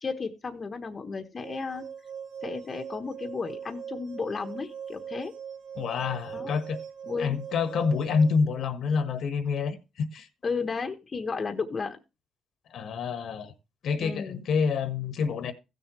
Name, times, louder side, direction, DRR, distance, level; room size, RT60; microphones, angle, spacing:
voice 1, 0.0-1.9 2.4-5.3 6.3-6.5 7.1-7.4 10.4-12.0 14.0-14.4, left 4 dB, 35° left, 1.2 m, -33 dB
sound 1, 1.4-8.4, right 7 dB, 75° right, 1.2 m, -41 dB
voice 2, 5.7-6.8 7.2-10.3 12.7-13.5 13.8-15.5, left 5 dB, 70° left, 1.4 m, -27 dB
15.5 x 6.7 x 3.1 m
cardioid pair, 90°, 0 cm